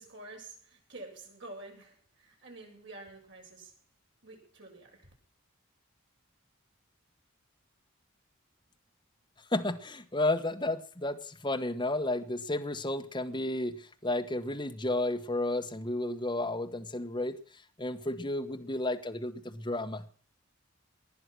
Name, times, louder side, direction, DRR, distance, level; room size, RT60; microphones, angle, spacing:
voice 1, 0.0-3.7 4.2-5.1, right 2 dB, 55° right, 7.8 m, -49 dB
voice 2, 9.5-17.4 17.8-20.0, left 2 dB, 20° left, 1.4 m, -32 dB
19.5 x 11.0 x 6.2 m
head